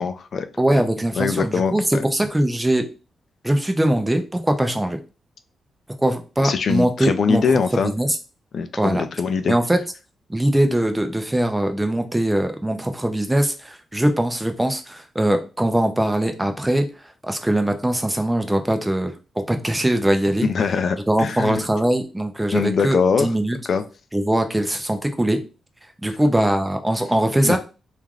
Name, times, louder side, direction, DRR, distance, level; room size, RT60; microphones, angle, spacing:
voice 1, 0.0-0.5 1.2-2.0 6.4-7.9 8.5-9.5 20.4-21.6 22.5-23.3 23.7-23.8 27.4-27.6, left 5 dB, 60° left, 9 dB, 0.3 m, -22 dB
voice 2, 0.6-2.8 3.4-5.0 6.0-7.4 7.8-8.2 8.8-9.0 9.5-9.8 10.3-16.9 17.2-20.5 21.1-23.6 24.1-25.4 26.0-27.6, right 1 dB, 10° right, 6 dB, 0.5 m, -21 dB
3.1 x 2.4 x 2.3 m, 0.32 s
cardioid pair, 95°, 0 cm